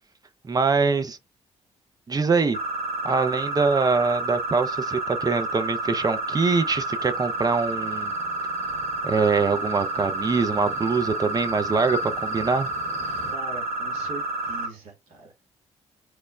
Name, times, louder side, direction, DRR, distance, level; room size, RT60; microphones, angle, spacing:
voice 1, 0.5-1.2 2.1-2.6 3.0-8.1 9.0-12.7, right 4 dB, 25° right, 0.5 m, -23 dB
sound 1, 2.5-14.7, right 2 dB, 45° right, 1.1 m, -30 dB
sound 2, 6.1-13.3, left 5 dB, 45° left, 0.7 m, -42 dB
voice 2, 13.3-15.4, right 2 dB, 70° right, 1.0 m, -41 dB
3.1 x 2.0 x 2.3 m
figure-of-eight pair, 40°, 16 cm